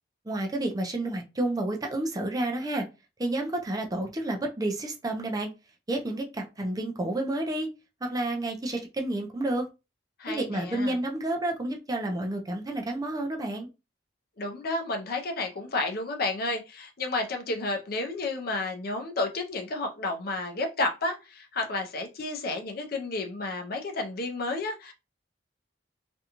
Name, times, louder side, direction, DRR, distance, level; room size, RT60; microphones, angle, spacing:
voice 1, 0.2-2.9 3.2-5.5 5.9-7.7 8.0-9.7 10.3-13.7, right 1 dB, 20° right, 0.5 m, -30 dB
voice 2, 10.2-10.9 14.4-24.9, left 2 dB, 55° left, 0.6 m, -31 dB
2.6 x 2.3 x 2.8 m
head